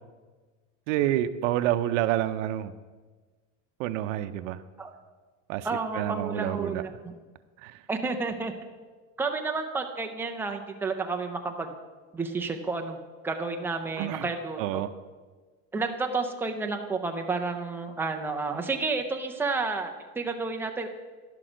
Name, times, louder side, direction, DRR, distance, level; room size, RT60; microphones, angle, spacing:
voice 1, 0.9-2.7 3.8-4.6 5.5-5.7 5.9-6.8 7.6-7.7 14.0-14.3 14.6-14.9, right 13 dB, 85° right, 10 dB, 0.6 m, -28 dB
voice 2, 5.6-7.1 7.9-8.5 9.2-11.7 12.1-13.0 13.2-14.8 15.7-20.9, right 3 dB, 5° right, 3 dB, 0.4 m, -31 dB
11.0 x 6.1 x 5.0 m, 1.4 s
cardioid pair, 155°, 37 cm